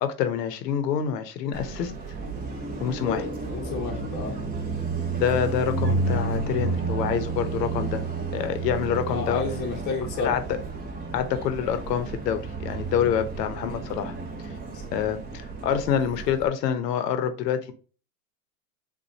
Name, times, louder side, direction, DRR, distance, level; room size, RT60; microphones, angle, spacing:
voice 1, 0.0-1.9 2.8-3.3 5.2-8.0 8.3-9.4 10.2-10.6 11.1-14.1 14.9-17.7, left 8 dB, 80° left, 10 dB, 1.0 m, -26 dB
Car passing by, 1.5-16.5, right 3 dB, 20° right, 1.1 m, -31 dB
voice 2, 3.0-4.3 9.1-10.4 15.7-15.8, left 4 dB, 20° left, -2 dB, 1.0 m, -31 dB
7.1 x 2.5 x 2.8 m, 0.39 s
supercardioid pair, 130°, 48 cm